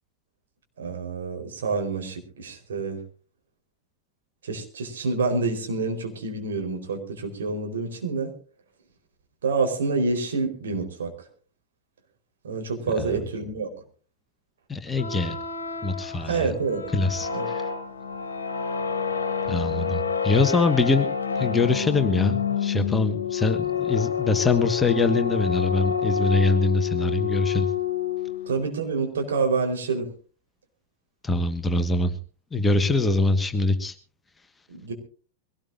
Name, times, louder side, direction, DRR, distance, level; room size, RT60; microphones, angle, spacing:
voice 1, 0.8-3.0 4.4-8.3 9.4-11.3 12.4-13.7 16.2-16.9 17.3-17.5 28.5-30.1 34.7-34.9, right 4 dB, 65° right, 4 dB, 4.3 m, -27 dB
voice 2, 14.7-15.4 15.8-16.5 16.9-17.7 19.5-21.1 21.4-27.7 31.2-32.1 32.5-33.9, left 3 dB, 10° left, 8 dB, 1.5 m, -23 dB
sound 1, 14.9-28.6, left 7 dB, 70° left, 1.6 m, -28 dB
23.5 x 18.0 x 2.6 m, 0.39 s
figure-of-eight pair, 90°, 0 cm